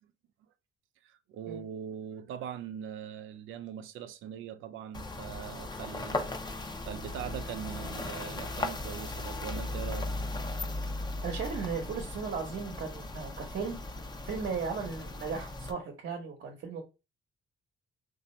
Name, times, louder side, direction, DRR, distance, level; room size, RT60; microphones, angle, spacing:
voice 1, 1.0-6.3 6.9-10.2, right 9 dB, 80° right, 0.5 m, -41 dB
sound 1, 4.9-15.7, left 2 dB, 20° left, 0.6 m, -37 dB
Wind instrument woodwind instrument, 5.6-10.7, equal, 75° left, 0.7 m, -53 dB
voice 2, 11.2-13.8 14.2-16.8, right 5 dB, 65° right, 0.9 m, -36 dB
2.9 x 2.6 x 4.2 m
cardioid pair, 90°, 20 cm